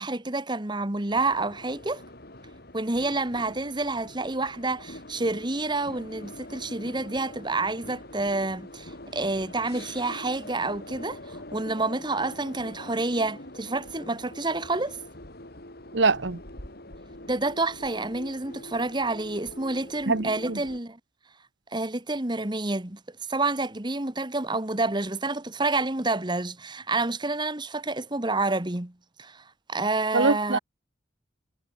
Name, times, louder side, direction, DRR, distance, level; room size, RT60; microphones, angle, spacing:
voice 1, 0.0-2.0 2.7-15.0 17.3-21.0 21.7-28.9 29.2-30.6, right 2 dB, 20° right, 1.3 m, -29 dB
sound 1, 1.1-20.8, left 1 dB, 50° left, 4.6 m, -44 dB
voice 2, 15.9-16.4 20.1-20.6 30.1-30.6, right 3 dB, 60° right, 1.1 m, -23 dB
head